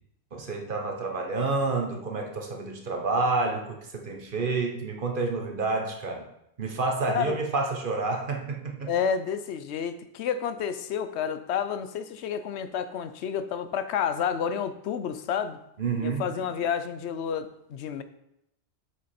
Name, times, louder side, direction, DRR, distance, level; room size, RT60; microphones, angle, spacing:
voice 1, 0.3-6.3 6.6-8.9 15.8-16.3, right 3 dB, 50° right, 2 dB, 1.2 m, -29 dB
voice 2, 8.9-15.6 16.0-18.0, left 7 dB, 80° left, 11 dB, 0.9 m, -30 dB
7.7 x 5.2 x 4.3 m, 0.80 s
omnidirectional pair, 1.1 m